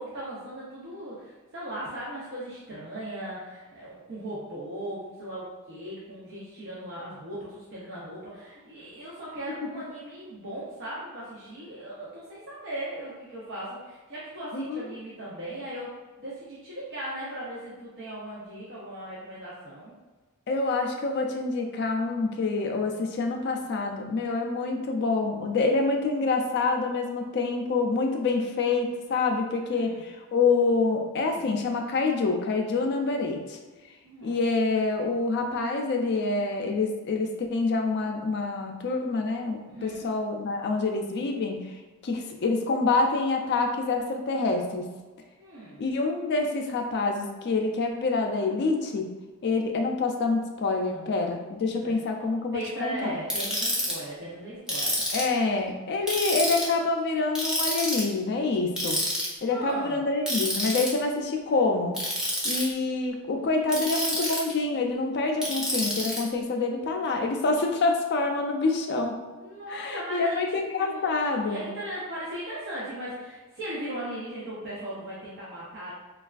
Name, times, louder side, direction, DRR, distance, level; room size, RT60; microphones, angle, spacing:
voice 1, 0.0-15.9 16.2-19.9 29.7-30.0 34.0-34.4 39.7-40.1 45.4-45.8 50.9-51.3 51.8-52.0 52.5-55.0 59.5-60.0 69.3-75.9, right 1 dB, 55° right, -8 dB, 0.6 m, -38 dB
voice 2, 20.5-33.6 34.2-41.6 42.0-44.9 45.8-49.1 49.4-53.2 55.1-59.0 59.4-61.9 62.4-69.2 69.7-71.6, left 3 dB, 50° left, 3 dB, 0.4 m, -27 dB
Ratchet pawl, 53.3-53.9 54.7-55.4 56.1-56.7 57.4-58.1 58.8-59.3 60.3-60.9 61.9-62.6 63.7-64.5 65.4-66.2, equal, 5° right, 0.5 m, -28 dB
3.3 x 2.3 x 2.3 m, 1.3 s
head